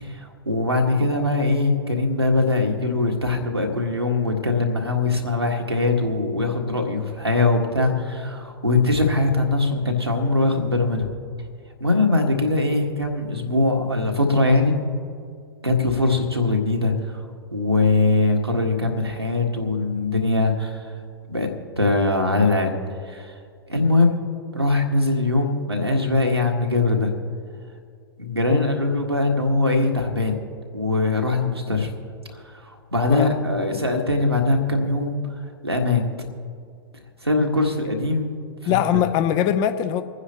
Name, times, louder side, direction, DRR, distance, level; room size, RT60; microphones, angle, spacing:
voice 1, 0.1-11.0 11.8-14.8 15.6-16.9 17.5-20.8 21.3-21.5 21.8-22.7 23.1-23.3 23.7-24.2 24.5-27.1 28.2-30.4 30.7-31.9 32.9-35.2 35.6-36.0 37.2-38.4, left 2 dB, 90° right, 1 dB, 1.7 m, -21 dB
voice 2, 38.7-40.0, left 10 dB, 30° left, 10 dB, 0.7 m, -21 dB
28.0 x 9.8 x 2.9 m, 2.2 s
figure-of-eight pair, 100°, 13 cm